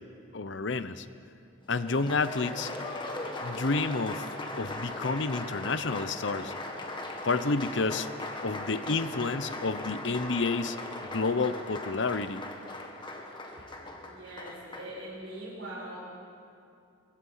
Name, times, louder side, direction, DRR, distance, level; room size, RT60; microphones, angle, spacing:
voice 1, 0.3-1.0 1.7-2.7 3.4-4.3 4.6-6.5 7.2-8.1 8.4-12.4, left 3 dB, 60° left, 13 dB, 0.8 m, -30 dB
Applause, 1.7-15.0, left 2 dB, 25° left, 1.8 m, -39 dB
voice 2, 14.0-16.0, right 1 dB, 75° right, -6 dB, 5.7 m, -42 dB
23.5 x 23.0 x 5.7 m, 2.5 s
head